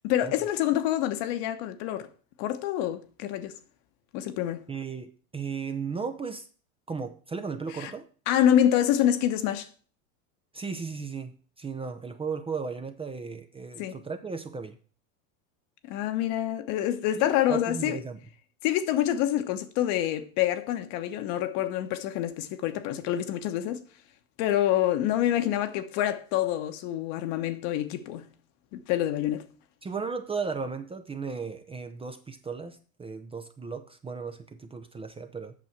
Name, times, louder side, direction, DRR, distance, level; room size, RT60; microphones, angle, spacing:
voice 1, 0.0-2.1 2.4-3.5 4.1-4.7 7.7-7.9 8.3-9.7 13.8-14.0 15.8-18.0 18.6-23.8 24.4-28.3 28.7-29.4, left 11 dB, 55° left, 1.2 m, -27 dB
voice 2, 4.7-6.5 6.9-8.1 10.5-14.8 17.2-18.2 29.8-35.5, right 5 dB, 15° right, 0.6 m, -35 dB
8.4 x 6.2 x 5.9 m
hypercardioid pair, 110°, 43 cm